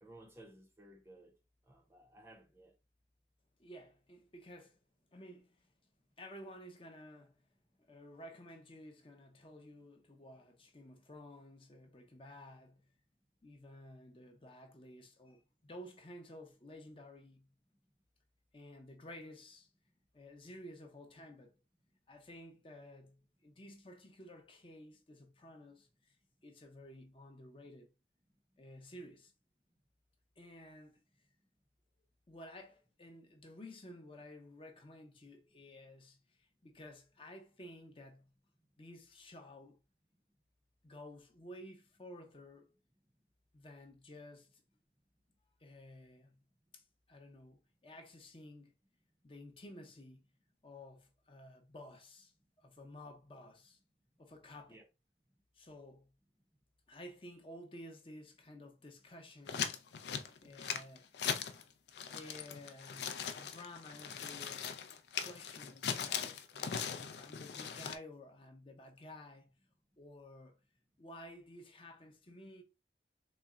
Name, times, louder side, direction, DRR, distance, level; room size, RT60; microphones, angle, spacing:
voice 1, 0.0-1.4 1.7-2.7 54.7-54.8, right 1 dB, 15° right, 0.5 m, -57 dB
voice 2, 3.6-4.8 5.1-5.7 6.2-7.4 7.8-12.9 13.4-17.5 18.5-19.7 20.1-21.6 22.1-26.2 26.4-27.9 28.6-29.3 30.4-31.0 32.3-38.3 38.8-39.8 40.8-42.7 43.5-44.6 45.6-46.4 46.7-48.7 49.2-50.3 50.6-52.3 52.6-53.8 54.2-54.8 55.5-56.1 56.9-61.2 62.0-64.9 65.2-69.6 70.0-70.6 71.0-72.6, left 1 dB, 30° left, 0.6 m, -53 dB
sound 1, 59.5-61.6 61.9-68.0, left 7 dB, 75° left, 0.4 m, -40 dB
4.1 x 2.1 x 3.6 m
head